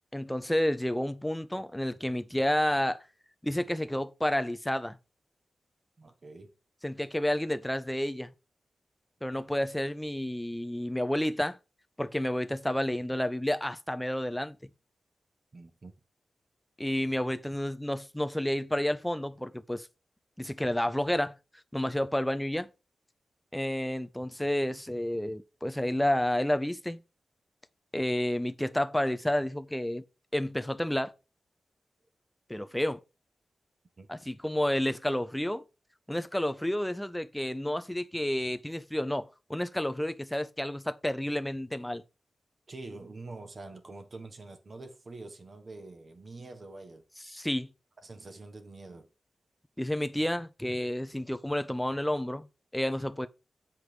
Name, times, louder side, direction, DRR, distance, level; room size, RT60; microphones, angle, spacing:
voice 1, 0.1-3.0 3.4-5.0 6.8-8.3 9.2-11.6 12.0-14.6 16.8-19.9 20.4-21.3 21.7-22.7 23.5-27.0 27.9-30.0 30.3-31.1 32.5-33.0 34.1-35.6 36.1-42.0 47.3-47.7 49.8-52.5 52.7-53.3, left 1 dB, 5° left, 0.6 m, -30 dB
voice 2, 6.0-6.5 15.5-15.9 34.0-34.1 42.7-47.1 48.0-49.1, right 2 dB, 40° right, 1.4 m, -45 dB
8.1 x 4.7 x 5.1 m
wide cardioid pair, 135°, 0 cm